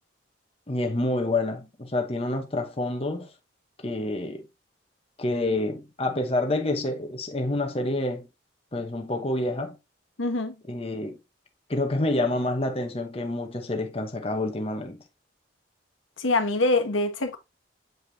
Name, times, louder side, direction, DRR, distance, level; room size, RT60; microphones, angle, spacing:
voice 1, 0.7-3.3 3.8-4.4 5.2-8.3 8.7-9.7 10.7-11.2 11.7-15.0, left 2 dB, 30° left, 0.9 m, -28 dB
voice 2, 10.2-10.5 16.2-17.4, left 2 dB, 85° left, 1.2 m, -24 dB
7.8 x 5.0 x 2.7 m
head